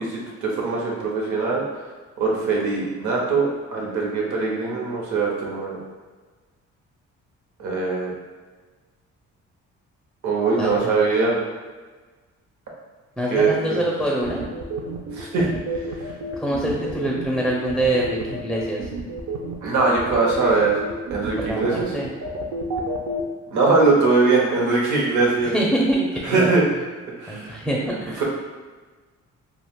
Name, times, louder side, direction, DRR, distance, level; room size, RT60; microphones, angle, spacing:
voice 1, 0.0-1.6 2.2-5.8 7.6-8.1 10.2-11.4 13.3-13.9 15.1-15.5 19.6-20.8 21.1-21.9 23.5-25.5 26.2-26.6 27.2-27.6 28.2-28.3, right 3 dB, 75° right, -3 dB, 0.9 m, -21 dB
voice 2, 10.6-10.9 13.2-14.5 16.4-18.8 21.4-22.1 25.5-26.5 27.3-28.2, right 1 dB, ahead, -4 dB, 0.4 m, -25 dB
sound 1, 14.2-23.2, right 3 dB, 60° right, 0.5 m, -30 dB
2.3 x 2.3 x 3.5 m, 1.4 s
cardioid pair, 90°, 30 cm